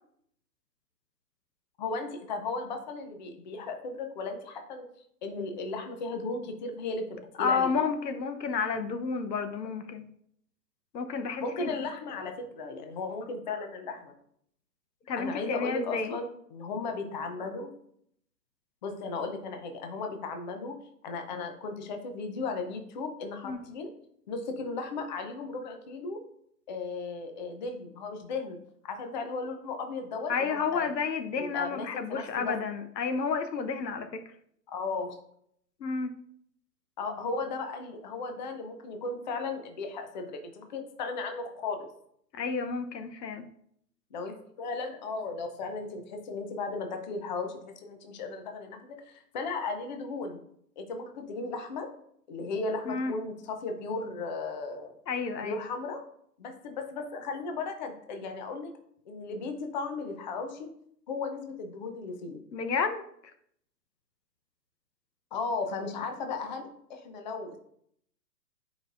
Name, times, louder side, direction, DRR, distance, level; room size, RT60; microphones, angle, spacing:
voice 1, 1.8-4.8 5.2-7.7 11.4-14.1 15.2-17.7 18.8-20.8 21.0-23.9 24.3-26.2 26.7-28.6 28.8-30.9 31.4-32.6 34.7-35.2 37.0-41.9 44.1-50.4 50.8-51.9 52.3-54.9 55.4-56.0 56.4-58.7 59.1-60.7 61.1-62.4 65.3-67.6, left 3 dB, 30° left, 5 dB, 0.6 m, -36 dB
voice 2, 7.4-10.0 10.9-11.7 15.1-16.1 23.4-23.6 30.3-34.2 35.8-36.1 42.3-43.4 52.8-53.1 55.1-55.6 62.5-63.0, left 5 dB, 85° left, 8 dB, 1.0 m, -31 dB
8.9 x 5.0 x 2.5 m, 0.69 s
hypercardioid pair, 150°, 49 cm